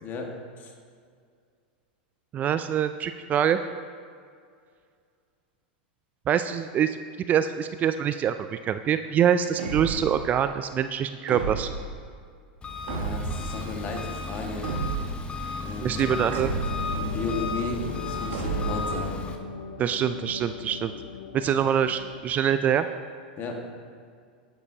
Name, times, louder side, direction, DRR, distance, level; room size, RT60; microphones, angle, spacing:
voice 1, 2.3-3.6 6.3-7.0 7.3-11.7 15.8-16.5 19.8-20.9 21.3-22.9, right 9 dB, 30° right, 10 dB, 0.3 m, -25 dB
sound 1, 9.6-10.3 11.3-11.9 12.9-13.5 14.6-15.3 16.3-17.0 18.3-19.0, right 5 dB, 80° right, 1.5 m, -31 dB
Engine, 12.6-19.4, left 3 dB, 20° left, 0.8 m, -34 dB
voice 2, 12.9-14.7 15.6-16.6 16.9-19.1 23.4-23.6, left 3 dB, 35° left, 1 dB, 1.7 m, -34 dB
sound 2, 16.0-22.2, left 4 dB, 80° left, 0.6 m, -37 dB
11.0 x 9.9 x 2.8 m, 2.1 s
hypercardioid pair, 110°, 5 cm